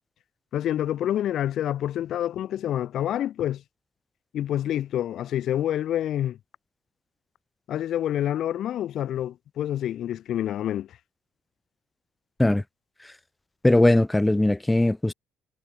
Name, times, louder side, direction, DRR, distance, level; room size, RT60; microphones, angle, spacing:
voice 1, 0.5-3.6 4.3-6.4 7.7-10.9, left 11 dB, 60° left, 1.4 m, -27 dB
voice 2, 13.6-15.1, left 1 dB, 10° left, 0.4 m, -20 dB
hypercardioid pair, 60°, 0 cm